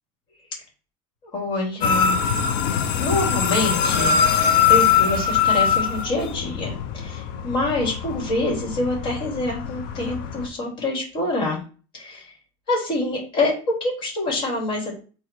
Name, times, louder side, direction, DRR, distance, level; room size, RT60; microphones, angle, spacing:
voice 1, 1.3-2.2 3.0-11.6 11.9-12.2 12.7-15.0, left 2 dB, 45° left, -2 dB, 3.2 m, -26 dB
sound 1, 1.8-10.5, left 7 dB, 85° left, 0.9 m, -22 dB
6.9 x 3.9 x 4.5 m, 0.37 s
cardioid pair, 175°, 11 cm